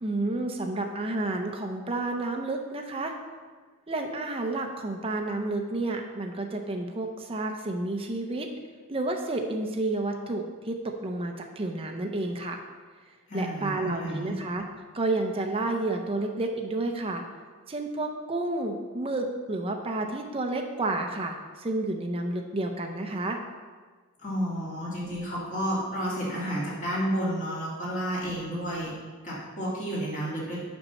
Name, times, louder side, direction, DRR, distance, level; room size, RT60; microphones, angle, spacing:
voice 1, 0.0-3.1 3.9-8.5 8.9-12.6 13.3-14.6 14.9-17.2 17.7-23.4, right 2 dB, 25° right, 3 dB, 0.6 m, -30 dB
voice 2, 13.3-14.3 24.2-28.9 29.2-30.6, equal, 35° left, -7 dB, 2.2 m, -31 dB
7.0 x 5.5 x 5.6 m, 1.5 s
head